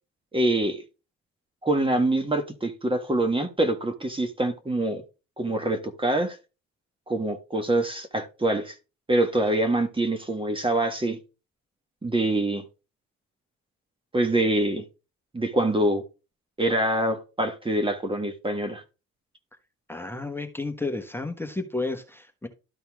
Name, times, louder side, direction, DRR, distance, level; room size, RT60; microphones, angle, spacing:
voice 1, 0.3-0.8 1.6-5.0 5.4-6.4 7.1-8.7 9.1-11.2 12.0-12.6 14.1-14.8 15.3-16.0 16.6-18.8, right 1 dB, 15° right, 1.3 m, -25 dB
voice 2, 19.9-22.5, left 2 dB, 5° left, 1.2 m, -32 dB
12.5 x 4.2 x 3.5 m
cardioid pair, 90°, 30 cm